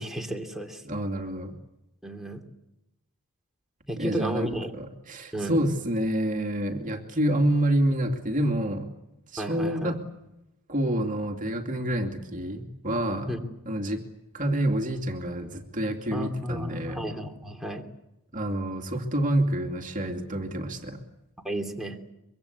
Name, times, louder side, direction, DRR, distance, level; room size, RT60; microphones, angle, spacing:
voice 1, 0.0-0.8 2.0-2.4 3.9-4.7 5.3-5.6 9.4-10.0 13.3-13.4 16.1-17.8 21.4-22.0, equal, ahead, 2 dB, 2.9 m, -32 dB
voice 2, 0.8-1.6 4.0-8.9 9.3-10.0 10.7-13.3 13.7-14.0 14.3-17.0 18.3-21.0, right 1 dB, 35° right, 4 dB, 2.6 m, -28 dB
25.0 x 24.0 x 8.3 m, 0.89 s
head